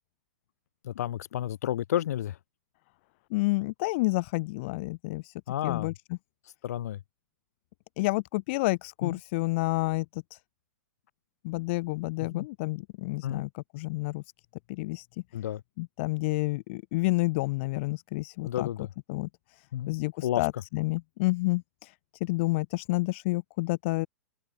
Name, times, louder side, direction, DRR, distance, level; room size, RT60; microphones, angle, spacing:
voice 1, 0.8-2.4 5.5-5.9 6.6-7.0 9.0-9.2 12.3-12.5 13.2-13.4 15.3-15.6 18.4-18.9 19.7-19.9 20.2-20.4, left 11 dB, 70° left, 1.3 m, -31 dB
voice 2, 3.3-5.3 5.6-5.9 8.0-10.4 11.4-14.2 14.7-15.1 15.8-18.7 19.1-19.3 19.6-21.9 22.2-24.1, left 23 dB, 45° left, 0.8 m, -29 dB
hypercardioid pair, 140°, 9 cm